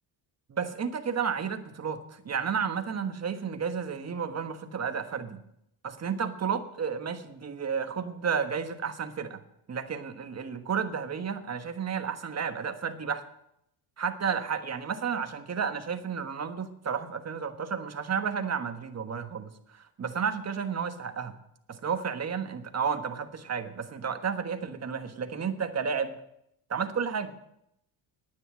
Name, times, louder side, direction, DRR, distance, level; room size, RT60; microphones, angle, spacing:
voice 1, 0.5-5.4 5.8-9.4 9.7-13.2 14.0-21.3 21.7-26.2 26.7-27.3, right 6 dB, 35° right, 7 dB, 1.4 m, -32 dB
9.8 x 9.6 x 7.5 m, 0.77 s
cardioid pair, 95°, 46 cm